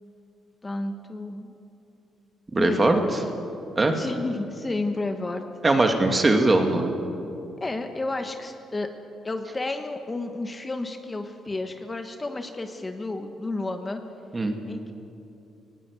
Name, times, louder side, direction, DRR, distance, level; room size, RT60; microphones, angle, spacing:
voice 1, 0.6-1.5 2.6-3.1 3.9-5.4 7.6-8.9 9.2-14.0 14.7-14.9, left 2 dB, 25° left, 6 dB, 1.3 m, -31 dB
voice 2, 2.5-3.0 3.8-4.0 5.6-6.9 14.3-14.6, right 2 dB, 25° right, 4 dB, 2.4 m, -20 dB
19.0 x 17.5 x 8.3 m, 2.7 s
cardioid pair, 90°, 0 cm